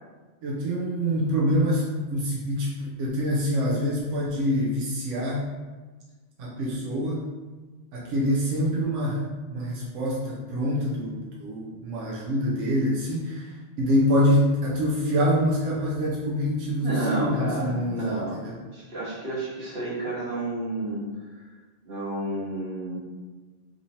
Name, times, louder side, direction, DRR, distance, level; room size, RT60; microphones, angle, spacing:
voice 1, 0.4-5.5 6.4-7.2 7.9-18.6, equal, 90° right, -4 dB, 1.0 m, -25 dB
voice 2, 16.8-18.4 18.7-21.0 21.8-23.0, right 2 dB, 55° right, -8 dB, 1.5 m, -30 dB
3.6 x 3.0 x 2.7 m, 1.3 s
omnidirectional pair, 1.2 m